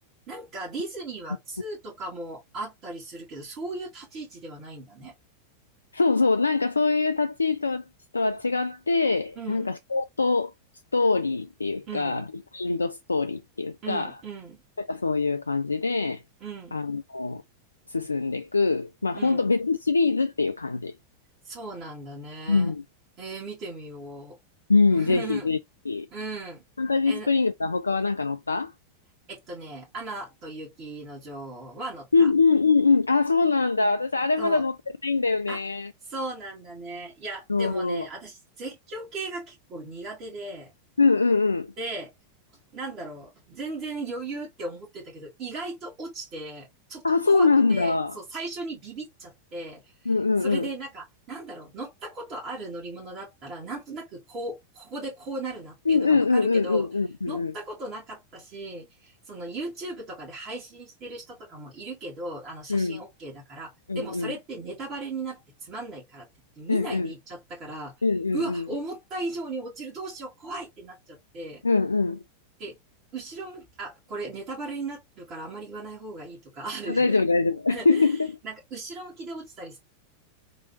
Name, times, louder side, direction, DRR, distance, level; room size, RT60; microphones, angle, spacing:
voice 1, 0.3-5.1 9.4-9.7 11.9-12.2 13.8-14.6 16.4-16.8 19.1-19.5 21.4-22.7 23.2-24.4 24.9-25.5 26.1-26.6 27.1-27.3 29.3-32.3 34.4-34.6 35.5-35.6 36.1-40.7 41.8-42.1 42.7-50.1 50.4-56.9 57.3-66.3 66.6-67.9 68.3-71.6 72.6-72.8 73.1-77.2 77.7-78.1 78.4-79.8, right 2 dB, 35° right, 2.2 m, -37 dB
voice 2, 5.9-7.8 8.1-10.5 10.9-12.2 12.5-14.1 14.8-16.2 16.7-17.4 17.9-20.9 22.5-22.8 24.7-25.6 25.9-26.1 26.8-28.7 32.1-34.8 35.0-35.9 37.5-38.1 41.0-41.7 47.0-48.2 50.1-50.7 55.9-57.5 62.7-63.0 63.9-64.3 66.7-67.1 68.0-68.7 71.6-72.2 76.9-78.3, left 4 dB, 80° left, 0.3 m, -23 dB
3.9 x 3.1 x 2.8 m
figure-of-eight pair, 90°, 0 cm